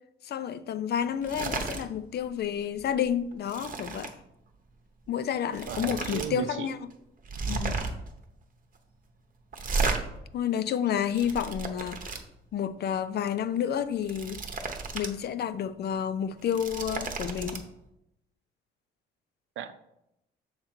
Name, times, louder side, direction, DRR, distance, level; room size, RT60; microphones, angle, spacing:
voice 1, 0.2-4.1 5.1-6.8 7.5-7.8 10.3-12.2 12.5-14.4 14.9-17.7, left 9 dB, 55° left, 0.4 m, -30 dB
sound 1, 1.2-1.8 2.2-2.4 2.8-4.1 5.1-5.2 5.5-6.3 6.6-6.7 7.2-8.1 9.5-10.0 10.8-12.2 13.9-15.1 15.5-15.6 16.3-17.6, right 4 dB, 45° right, 0.9 m, -33 dB
voice 2, 5.7-6.7 19.6-19.7, right 10 dB, 80° right, 0.6 m, -35 dB
6.6 x 3.7 x 4.4 m
cardioid pair, 90°, 20 cm